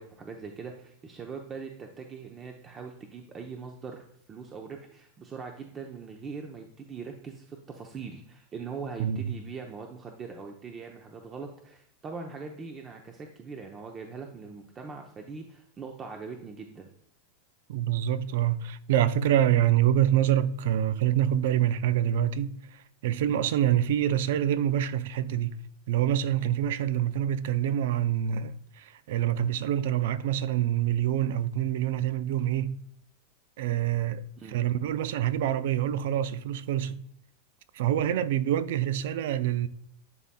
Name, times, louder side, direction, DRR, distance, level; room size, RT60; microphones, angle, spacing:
voice 1, 0.0-16.9 34.4-34.6, right 5 dB, 25° right, 0.7 m, -41 dB
voice 2, 9.0-9.3 17.7-25.6 25.9-32.8 33.6-37.1 37.7-39.7, right 11 dB, 70° right, 0.4 m, -26 dB
10.5 x 4.1 x 2.2 m
hypercardioid pair, 120°, 0 cm